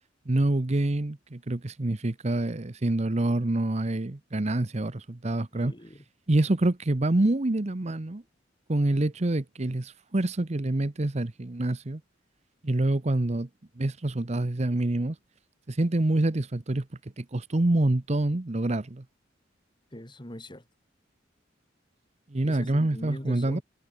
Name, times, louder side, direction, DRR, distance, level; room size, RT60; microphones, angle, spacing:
voice 1, 0.3-5.7 6.3-8.2 8.7-12.0 12.6-13.5 13.8-15.2 15.7-16.8 17.2-19.0 22.3-23.6, right 2 dB, 35° right, 0.9 m, -26 dB
voice 2, 5.5-6.0 19.9-20.6 22.4-23.6, equal, 25° left, 4.5 m, -41 dB
head